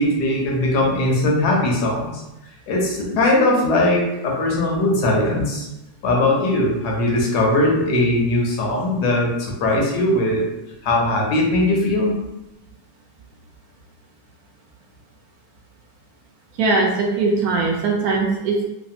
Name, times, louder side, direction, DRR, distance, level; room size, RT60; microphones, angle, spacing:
voice 1, 0.0-2.2 2.7-5.7 6.0-10.4 10.8-12.2, left 1 dB, 85° left, -1 dB, 1.3 m, -19 dB
voice 2, 16.6-18.6, right 3 dB, 70° right, -1 dB, 1.0 m, -20 dB
3.3 x 2.0 x 2.7 m, 0.93 s
omnidirectional pair, 1.7 m